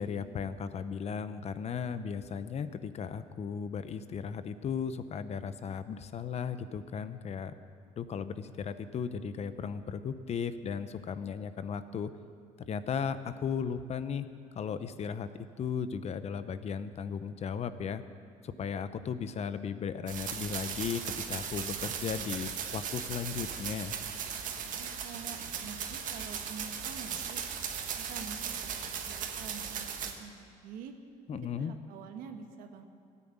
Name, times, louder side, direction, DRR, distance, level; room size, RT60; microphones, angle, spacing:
voice 1, 0.0-7.5 8.0-12.1 12.7-14.3 14.5-15.3 15.6-18.0 18.4-23.9 31.3-31.7, left 7 dB, 50° left, 12 dB, 0.9 m, -36 dB
sound 1, 20.1-30.1, right 7 dB, 70° right, 1.7 m, -37 dB
voice 2, 24.6-27.4 28.0-30.9 31.3-32.9, right 6 dB, 90° right, 6 dB, 1.4 m, -47 dB
16.5 x 10.0 x 8.8 m, 2.3 s
cardioid pair, 100°, 14 cm